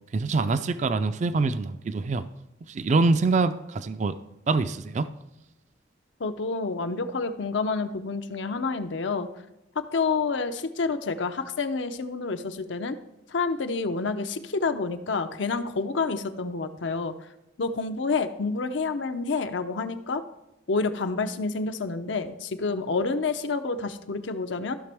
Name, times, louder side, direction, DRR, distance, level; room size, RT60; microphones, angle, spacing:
voice 1, 0.1-2.3 2.7-4.2 4.5-5.1, right 3 dB, 40° right, 12 dB, 0.4 m, -25 dB
voice 2, 6.2-9.3 9.9-13.0 13.3-17.1 17.6-20.2 20.7-24.8, left 4 dB, 85° left, 9 dB, 0.6 m, -28 dB
14.5 x 6.0 x 3.4 m, 0.91 s
head